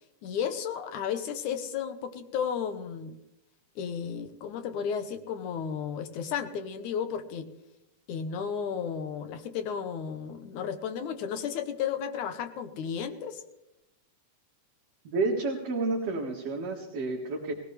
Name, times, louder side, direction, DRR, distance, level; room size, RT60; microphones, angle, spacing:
voice 1, 0.2-3.2 3.8-7.5 8.1-13.4, left 7 dB, 70° left, 8 dB, 2.5 m, -33 dB
voice 2, 15.0-17.5, right 3 dB, 55° right, -3 dB, 2.6 m, -30 dB
21.0 x 16.5 x 3.3 m, 0.90 s
omnidirectional pair, 3.6 m